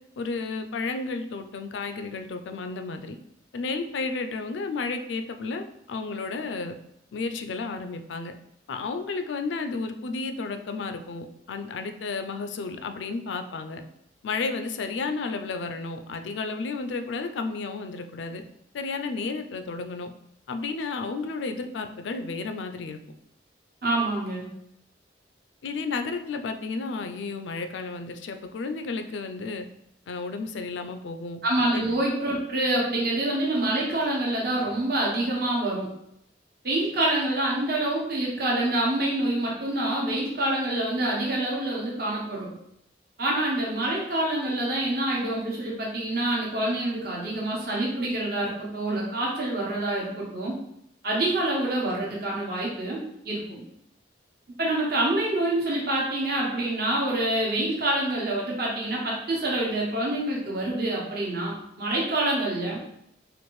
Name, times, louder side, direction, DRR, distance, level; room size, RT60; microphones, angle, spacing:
voice 1, 0.2-3.2 3.5-6.7 7.1-8.3 8.7-13.8 14.2-18.4 18.7-20.1 20.5-23.0 25.6-29.7 30.1-31.4 31.7-31.9, left 4 dB, 85° left, 7 dB, 0.4 m, -32 dB
voice 2, 23.8-24.5 31.4-35.9 36.6-42.5 43.2-50.6 51.0-53.6 54.6-62.8, right 1 dB, 55° right, -4 dB, 1.0 m, -26 dB
4.3 x 2.5 x 3.1 m, 0.77 s
head